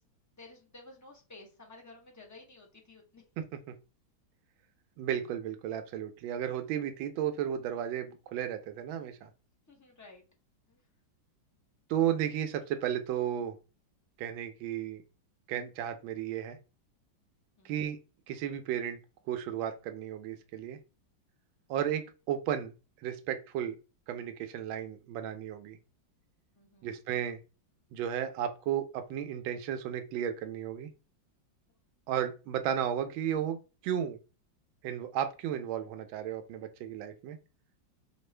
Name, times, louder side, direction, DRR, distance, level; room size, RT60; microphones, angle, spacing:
voice 1, 0.4-3.2 9.7-10.2 10.7-10.8 17.6-17.8 26.6-26.9, left 2 dB, 20° left, 0 dB, 0.4 m, -53 dB
voice 2, 5.0-9.3 11.9-13.6 14.2-15.0 15.5-16.6 17.6-18.0 18.3-19.0 19.3-20.8 21.7-22.7 23.0-23.8 24.1-25.8 26.8-27.4 27.9-30.9 32.1-33.6 33.8-34.2 34.8-37.4, right 10 dB, 80° right, 7 dB, 1.4 m, -34 dB
5.2 x 2.4 x 3.2 m, 0.31 s
omnidirectional pair, 2.1 m